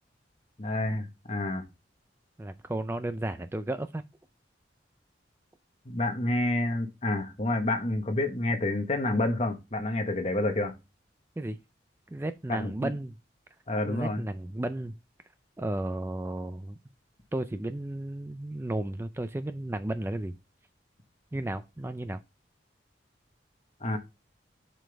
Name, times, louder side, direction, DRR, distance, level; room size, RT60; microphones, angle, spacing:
voice 1, 0.6-1.6 5.8-10.7 12.5-12.9 13.7-14.2 23.8-24.0, left 2 dB, 35° left, 1.2 m, -29 dB
voice 2, 2.4-4.0 11.4-11.6 12.1-13.1 13.9-14.9 15.6-16.8 17.3-20.3 21.3-22.2, right 1 dB, 15° right, 0.4 m, -33 dB
7.5 x 5.2 x 3.3 m
head